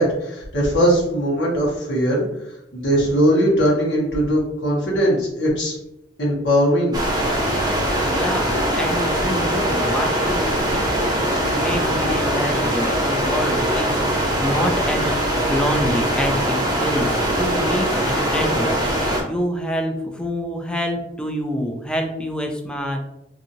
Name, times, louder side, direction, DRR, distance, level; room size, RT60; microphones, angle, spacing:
voice 1, 0.0-2.2 2.7-5.8 6.2-7.0, equal, 80° left, -5 dB, 1.2 m, -19 dB
sound 1, 6.9-19.2, equal, 20° right, 0.7 m, -21 dB
voice 2, 8.0-10.8 11.2-15.2 15.5-23.0, equal, 5° left, 3 dB, 0.3 m, -27 dB
2.8 x 2.6 x 2.6 m, 0.86 s
head